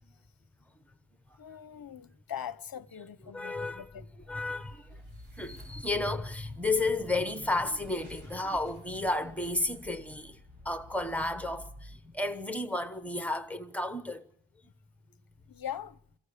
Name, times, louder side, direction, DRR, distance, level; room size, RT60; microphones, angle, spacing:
voice 1, 1.4-4.0 4.9-5.0 15.5-16.0, left 10 dB, 45° left, 0.7 m, -41 dB
voice 2, 3.3-5.0 5.3-14.3, left 2 dB, 5° left, 1.0 m, -32 dB
sound 1, 3.9-13.1, equal, 75° right, 4.0 m, -51 dB
22.5 x 15.0 x 8.4 m
wide cardioid pair, 170°, 47 cm